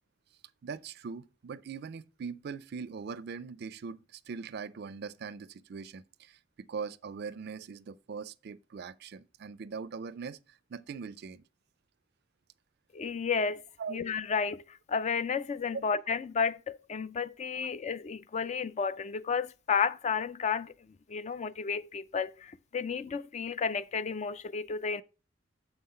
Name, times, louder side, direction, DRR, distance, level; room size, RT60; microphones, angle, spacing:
voice 1, 0.6-11.4 13.8-14.0 15.7-15.8, right 5 dB, 55° right, 0.4 m, -41 dB
voice 2, 12.9-13.6 13.9-20.7 21.1-25.0, left 6 dB, 35° left, 0.3 m, -32 dB
7.1 x 5.6 x 4.3 m
head